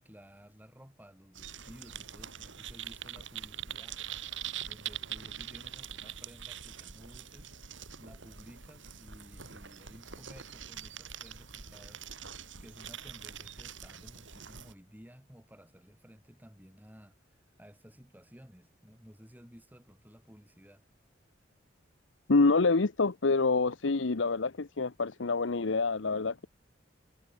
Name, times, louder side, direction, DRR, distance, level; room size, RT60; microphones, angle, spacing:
voice 1, 0.0-4.0 4.6-7.5 8.0-12.0 12.6-17.2 17.6-20.8, equal, 10° right, 5.9 m, -55 dB
sound 1, 1.3-14.7, right 9 dB, 85° right, 4.9 m, -44 dB
voice 2, 22.3-26.5, left 3 dB, 85° left, 0.9 m, -27 dB
head